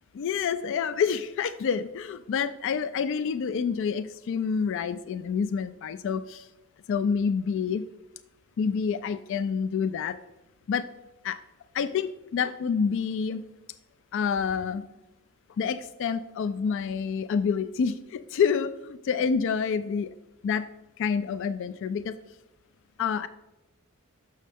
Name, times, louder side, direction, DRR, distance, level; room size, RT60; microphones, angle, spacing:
voice 1, 0.2-6.5 6.9-7.9 8.6-10.2 10.7-10.9 11.2-11.4 11.7-13.4 14.1-14.8 15.6-18.7 19.1-20.1 20.4-20.7 21.0-22.2 23.0-23.3, left 6 dB, 60° left, 12 dB, 0.3 m, -28 dB
6.6 x 6.3 x 3.4 m, 1.0 s
head